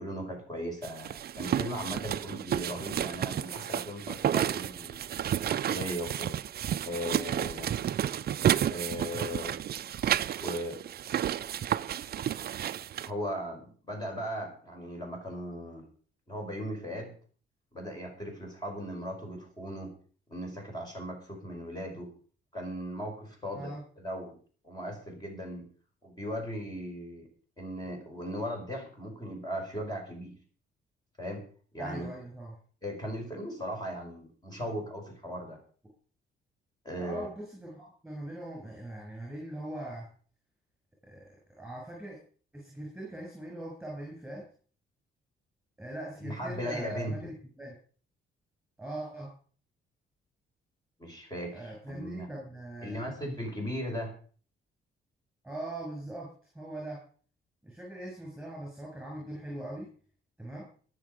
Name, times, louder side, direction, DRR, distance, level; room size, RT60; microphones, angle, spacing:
voice 1, 0.0-5.0 5.5-6.4 6.8-7.7 8.7-9.6 10.4-10.8 13.0-15.9 16.3-17.1 17.7-19.9 20.3-22.1 22.5-24.4 24.6-25.7 26.0-27.3 27.6-30.3 31.2-31.4 31.7-32.1 32.8-35.6 36.8-37.3 46.2-47.3 51.0-52.3 52.8-54.1, equal, 20° left, 1 dB, 4.9 m, -37 dB
sound 1, 0.8-13.1, right 10 dB, 50° right, 0.5 m, -31 dB
voice 2, 31.8-32.6 34.6-34.7 37.0-40.1 41.0-41.2 41.6-42.2 42.5-44.5 45.8-47.8 48.8-49.3 51.5-53.2 55.4-57.0 57.6-59.9 60.4-60.6, right 1 dB, 5° right, -3 dB, 7.4 m, -41 dB
21.0 x 7.2 x 5.1 m, 0.43 s
cardioid pair, 90°, 20 cm